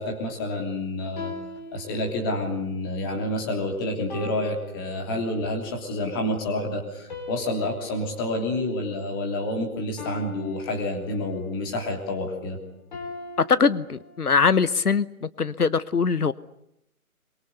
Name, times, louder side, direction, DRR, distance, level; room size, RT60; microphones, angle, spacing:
voice 1, 0.0-1.3 1.7-12.6, left 1 dB, 15° left, 2 dB, 3.1 m, -29 dB
sound 1, 1.2-2.5 4.1-5.5 7.1-9.4 10.0-11.5 12.9-14.5, left 3 dB, 30° left, 4.7 m, -41 dB
voice 2, 13.4-16.3, left 5 dB, 85° left, 17 dB, 1.1 m, -22 dB
24.5 x 23.5 x 8.2 m, 0.79 s
figure-of-eight pair, 160°, 44 cm